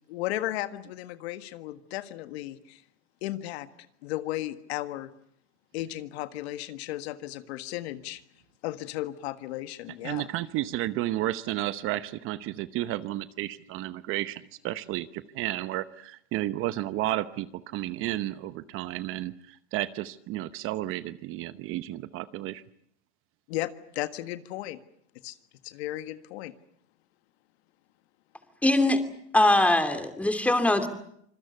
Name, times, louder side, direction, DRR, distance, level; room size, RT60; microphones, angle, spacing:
voice 1, 0.1-2.8 3.2-3.7 4.0-5.1 5.7-8.2 8.6-10.3 23.5-24.8 25.2-25.4 25.6-26.5, left 15 dB, 65° left, 11 dB, 1.7 m, -35 dB
voice 2, 10.0-22.6, right 15 dB, 40° right, 14 dB, 1.0 m, -32 dB
voice 3, 28.6-29.0 29.3-30.9, left 1 dB, 5° left, 8 dB, 2.7 m, -22 dB
26.0 x 22.0 x 8.2 m, 0.70 s
supercardioid pair, 140°, 34 cm